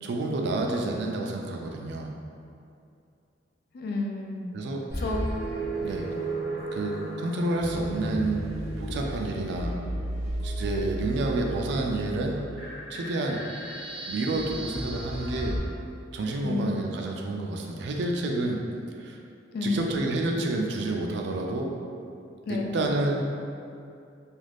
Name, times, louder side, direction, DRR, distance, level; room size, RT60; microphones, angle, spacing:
voice 1, 0.0-2.1 4.5-4.9 5.8-6.1 6.7-8.5 8.8-9.8 10.4-12.4 12.9-13.4 14.1-15.6 16.1-18.6 19.0-19.2 19.6-21.7 22.5-23.2, right 2 dB, 65° right, 1 dB, 0.4 m, -29 dB
voice 2, 3.7-4.6 5.0-5.3 16.4-16.8 19.5-20.3 22.5-22.9, left 2 dB, 55° left, 1 dB, 0.3 m, -31 dB
sound 1, 4.9-15.6, right 1 dB, 35° left, 0.9 m, -34 dB
2.4 x 2.4 x 3.3 m, 2.5 s
head